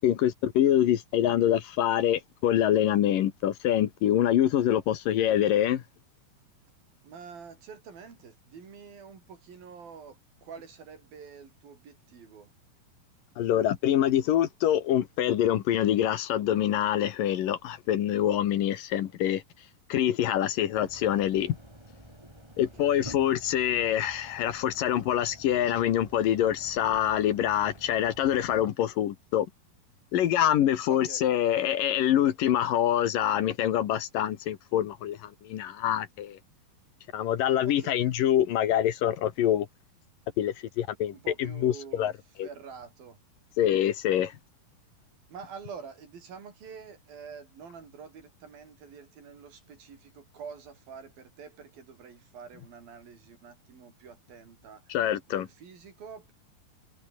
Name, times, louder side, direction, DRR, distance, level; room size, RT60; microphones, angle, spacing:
voice 1, 0.0-5.8 13.4-19.4 19.9-21.6 22.6-29.5 30.1-36.4 37.1-39.7 40.4-42.1 42.4-42.5 43.6-44.3 54.9-55.5, left 11 dB, 70° left, 2.9 m, -25 dB
voice 2, 7.0-12.5 22.6-23.1 30.9-31.2 37.6-38.1 41.1-42.1 42.4-43.2 45.3-54.9 55.3-56.3, right 6 dB, 70° right, 6.0 m, -47 dB
sound 1, 20.7-28.7, right 1 dB, 5° right, 7.0 m, -50 dB
omnidirectional pair, 4.3 m